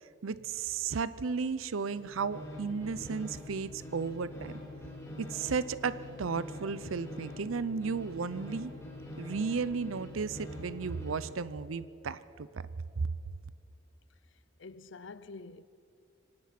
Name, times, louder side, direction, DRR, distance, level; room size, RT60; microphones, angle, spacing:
voice 1, 0.2-4.6 5.2-8.7 9.2-12.7 13.0-13.1, right 5 dB, 90° right, 0.6 m, -34 dB
sound 1, 1.8-11.4, left 1 dB, 15° left, 6.0 m, -45 dB
voice 2, 14.6-15.6, left 3 dB, 65° left, 0.6 m, -47 dB
25.5 x 18.5 x 5.9 m
head